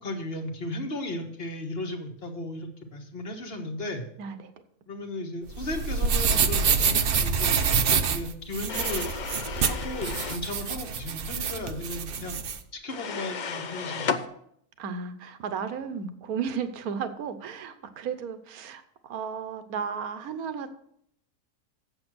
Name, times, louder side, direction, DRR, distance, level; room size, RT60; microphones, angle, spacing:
voice 1, 0.0-4.0 4.9-7.6 7.9-9.1 9.6-12.4 12.8-14.3, left 1 dB, 40° left, 4 dB, 1.5 m, -35 dB
voice 2, 4.2-4.5 14.8-20.7, right 6 dB, 70° right, 10 dB, 1.3 m, -34 dB
sound 1, 5.5-12.6, right 6 dB, 55° right, 0.7 m, -26 dB
sound 2, 8.7-10.5 12.9-14.2, left 6 dB, 75° left, 0.4 m, -33 dB
7.9 x 7.7 x 6.2 m, 0.71 s
omnidirectional pair, 1.6 m